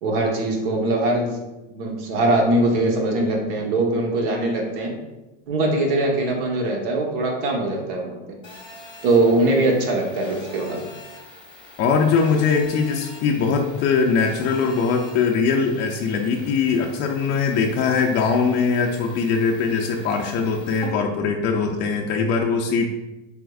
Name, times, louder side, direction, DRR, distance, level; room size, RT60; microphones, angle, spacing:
voice 1, 0.0-1.3 1.7-5.0 5.5-8.2 9.0-10.8, right 2 dB, 65° right, 1 dB, 1.0 m, -21 dB
Telephone, 8.4-20.9, left 2 dB, 15° left, 0.8 m, -44 dB
voice 2, 11.8-22.9, left 5 dB, 35° left, 1 dB, 0.4 m, -21 dB
4.6 x 3.4 x 2.3 m, 1.0 s
supercardioid pair, 125°, 30 cm